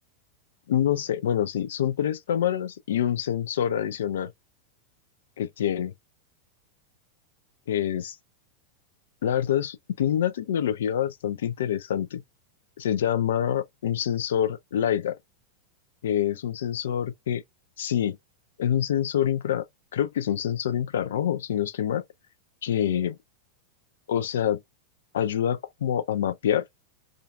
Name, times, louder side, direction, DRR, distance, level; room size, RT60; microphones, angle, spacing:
voice 1, 0.7-4.3 5.4-5.9 7.7-8.2 9.2-12.2 12.8-15.2 16.0-17.4 17.8-18.2 18.6-19.7 19.9-22.0 22.6-23.2 24.1-24.6 25.1-26.6, left 10 dB, 60° left, 0.4 m, -26 dB
2.4 x 2.3 x 2.3 m
figure-of-eight pair, 90°, 0 cm